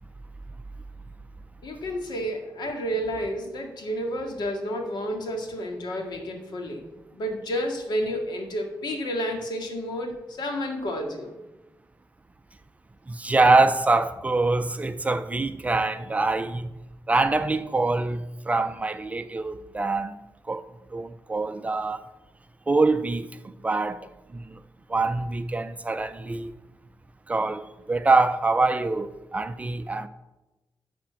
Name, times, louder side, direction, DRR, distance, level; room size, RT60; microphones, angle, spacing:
voice 1, 1.6-6.9 7.1-11.3, equal, 80° left, 1.9 m, -30 dB
voice 2, 13.1-16.7 17.1-20.1 20.5-20.6 20.9-22.0 22.7-23.3 23.6-24.0 24.3-24.4 24.9-26.5 27.3-27.6 27.9-30.1, right 3 dB, 20° right, 0.5 m, -24 dB
12.0 x 4.3 x 8.0 m
wide cardioid pair, 170°, 7 cm